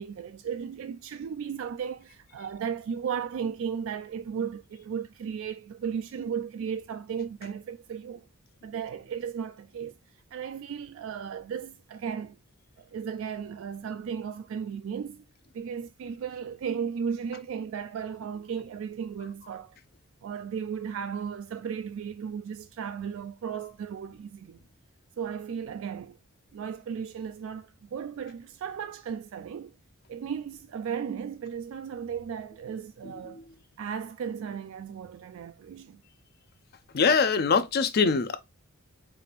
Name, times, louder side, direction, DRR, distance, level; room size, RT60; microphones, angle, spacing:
voice 1, 0.0-8.3 8.6-10.0 10.3-12.4 12.8-15.2 15.5-19.8 20.2-24.6 25.2-26.2 26.5-29.8 30.1-33.5 33.8-36.0, right 7 dB, 70° right, 0.3 m, -35 dB
voice 2, 33.0-33.4 36.9-38.4, left 5 dB, 45° left, 0.5 m, -24 dB
4.5 x 2.5 x 3.3 m
head